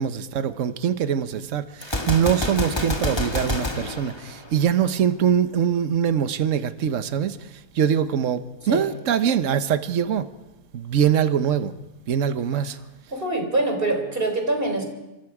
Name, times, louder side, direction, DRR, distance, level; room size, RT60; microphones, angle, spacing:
voice 1, 0.0-7.4 7.7-10.3 10.7-11.7 12.1-12.8, right 8 dB, 60° right, 1.3 m, -23 dB
Gunshot gunfire, 1.8-4.9, left 1 dB, 20° left, 1.5 m, -28 dB
voice 2, 13.1-14.8, right 2 dB, 35° right, 3.8 m, -24 dB
29.0 x 25.0 x 4.9 m
omnidirectional pair, 1.6 m